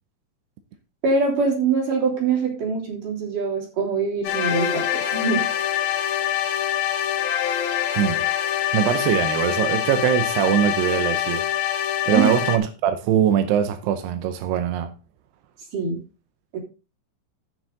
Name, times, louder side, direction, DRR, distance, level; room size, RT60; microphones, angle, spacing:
voice 1, 1.0-5.4 12.1-12.3 15.7-16.0 16.5-16.6, right 4 dB, 45° right, 4.3 m, -23 dB
sound 1, 4.3-12.6, left 11 dB, 80° left, 3.8 m, -24 dB
voice 2, 8.7-11.4 12.1-14.9, right 10 dB, 80° right, 2.4 m, -22 dB
14.0 x 6.2 x 3.8 m
omnidirectional pair, 5.6 m